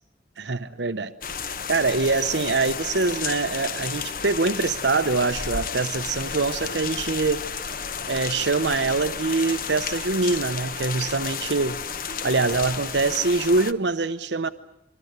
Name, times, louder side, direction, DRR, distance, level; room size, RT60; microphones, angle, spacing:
voice 1, 0.4-1.1 1.4-7.4 8.1-11.8 12.2-14.5, right 3 dB, 85° right, 11 dB, 0.9 m, -24 dB
sound 1, 1.2-13.7, left 6 dB, 50° left, 1.0 m, -32 dB
25.5 x 24.0 x 8.2 m, 0.83 s
head